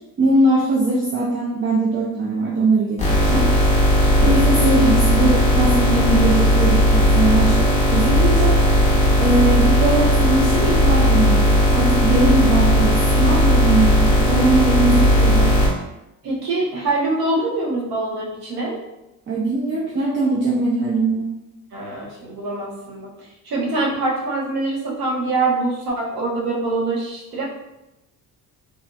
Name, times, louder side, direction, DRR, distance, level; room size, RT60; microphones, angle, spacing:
voice 1, 0.2-3.5 4.2-8.6 9.2-15.5 19.3-21.2, right 2 dB, 35° right, -6 dB, 0.4 m, -20 dB
sound 1, 3.0-15.7, equal, 20° left, 0.7 m, -16 dB
voice 2, 16.2-18.8 21.7-27.5, right 2 dB, 85° right, -3 dB, 1.0 m, -24 dB
3.4 x 2.5 x 2.2 m, 0.93 s
cardioid pair, 165°, 37 cm